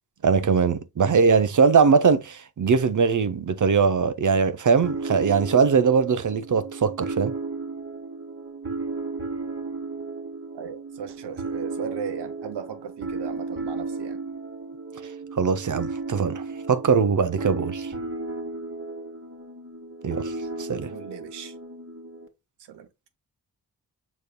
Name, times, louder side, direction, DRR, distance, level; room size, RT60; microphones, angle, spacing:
voice 1, 0.2-7.3 15.3-17.9 20.0-20.3 20.6-20.9, right 5 dB, 50° right, 0.7 m, -21 dB
sound 1, 4.8-22.3, right 3 dB, 30° right, 1.4 m, -34 dB
voice 2, 10.5-14.2 20.9-21.5 22.7-22.9, right 7 dB, 90° right, 0.9 m, -37 dB
5.3 x 4.1 x 2.2 m
cardioid pair, 50°, 40 cm